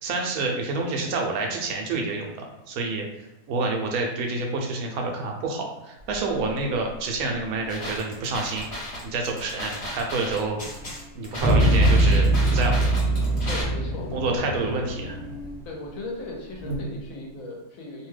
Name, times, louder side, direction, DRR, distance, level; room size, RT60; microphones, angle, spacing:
voice 1, 0.0-3.0 3.5-8.7 9.0-10.6 11.1-12.9 14.1-15.2, right 3 dB, 80° right, 1 dB, 1.1 m, -28 dB
Buzz, 6.0-17.4, right 1 dB, 15° left, 0.6 m, -43 dB
sound 1, 7.7-13.6, left 1 dB, 50° left, 1.1 m, -35 dB
sound 2, 11.4-15.4, right 1 dB, 40° right, 0.5 m, -22 dB
voice 2, 13.5-14.4 15.7-18.1, left 2 dB, 70° left, -1 dB, 1.1 m, -37 dB
2.7 x 2.2 x 3.2 m, 1.0 s
omnidirectional pair, 1.5 m